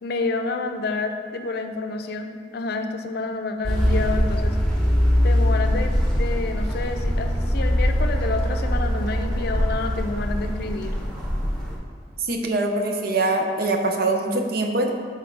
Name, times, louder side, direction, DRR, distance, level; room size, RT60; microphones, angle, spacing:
voice 1, 0.0-4.6 5.2-10.9, left 3 dB, 60° left, 6 dB, 0.5 m, -29 dB
sound 1, 3.6-11.8, equal, 5° left, 1.0 m, -22 dB
voice 2, 12.2-14.9, right 2 dB, 55° right, 3 dB, 0.7 m, -23 dB
6.1 x 4.2 x 4.7 m, 2.1 s
head